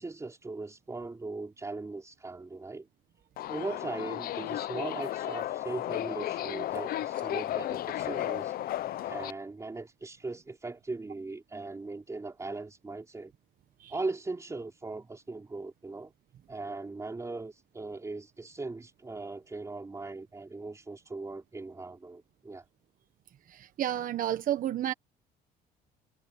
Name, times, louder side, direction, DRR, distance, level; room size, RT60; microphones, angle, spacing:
voice 1, 0.0-2.9 3.5-13.3 13.9-16.1 16.5-22.6, right 3 dB, 20° right, 4.6 m, -39 dB
Subway metro underground, 3.4-9.3, left 13 dB, 60° left, 0.7 m, -34 dB
voice 2, 23.5-24.9, right 11 dB, 55° right, 1.2 m, -31 dB
cardioid pair, 110°, 17 cm